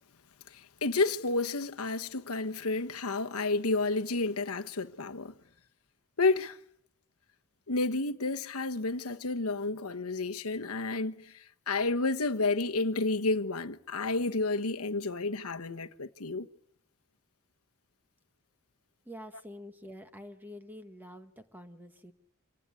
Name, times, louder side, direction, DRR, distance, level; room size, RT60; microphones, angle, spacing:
voice 1, 0.5-5.3 6.2-6.6 7.7-11.4 11.7-16.5, left 3 dB, 90° left, 1.2 m, -30 dB
voice 2, 19.0-22.1, equal, 10° right, 1.5 m, -47 dB
27.0 x 19.0 x 9.7 m
head